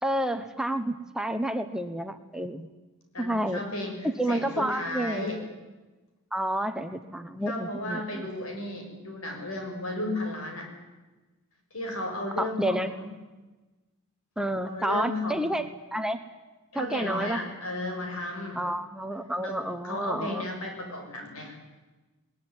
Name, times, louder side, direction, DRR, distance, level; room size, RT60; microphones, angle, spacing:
voice 1, 0.0-2.7 3.2-3.6 4.0-5.3 6.3-8.3 12.4-12.9 14.4-16.2 16.7-17.4 18.5-20.4, right 1 dB, 5° right, 8 dB, 1.0 m, -30 dB
voice 2, 3.1-5.4 7.5-10.7 11.7-13.1 14.6-15.6 16.7-18.6 19.4-21.6, left 1 dB, 70° left, 3 dB, 6.9 m, -34 dB
20.5 x 20.0 x 9.9 m, 1.2 s
head